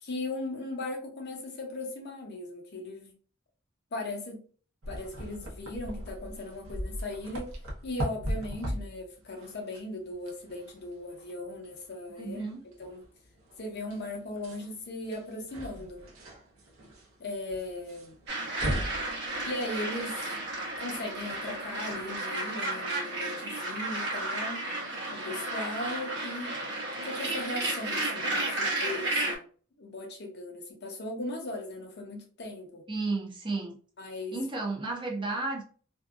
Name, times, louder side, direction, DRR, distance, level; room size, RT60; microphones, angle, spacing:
voice 1, 0.0-3.1 3.9-4.4 4.9-7.5 7.8-13.0 13.6-16.0 17.2-18.2 19.4-20.4 20.8-24.6 25.1-26.6 27.0-29.4 29.8-32.8 34.0-34.4, left 2 dB, 50° left, 0.7 m, -38 dB
sound 1, 4.8-22.2, equal, 75° right, 0.8 m, -40 dB
voice 2, 12.1-12.6 32.9-33.8 34.3-35.6, right 3 dB, 25° right, 0.5 m, -32 dB
sound 2, 18.3-29.4, right 2 dB, 55° right, 0.9 m, -33 dB
2.6 x 2.3 x 2.4 m
head